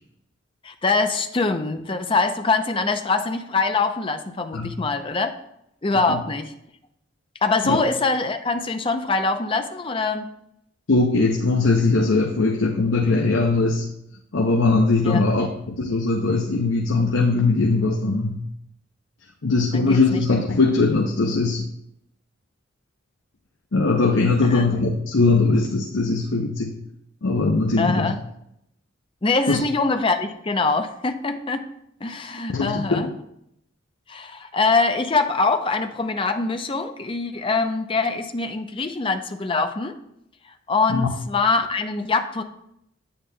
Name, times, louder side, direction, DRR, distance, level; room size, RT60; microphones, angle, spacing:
voice 1, 0.6-5.3 5.8-6.5 7.4-10.3 15.0-15.2 19.7-20.2 24.5-24.6 27.8-28.2 29.2-31.6 32.0-33.1 34.1-39.9 40.7-42.4, left 3 dB, 30° left, 7 dB, 0.6 m, -23 dB
voice 2, 10.9-13.9 14.3-18.4 19.4-21.6 23.7-26.8 27.2-28.1 29.5-29.6 32.5-33.1 40.9-41.1, left 3 dB, 80° left, 1 dB, 0.7 m, -20 dB
8.6 x 8.5 x 2.3 m, 0.77 s
head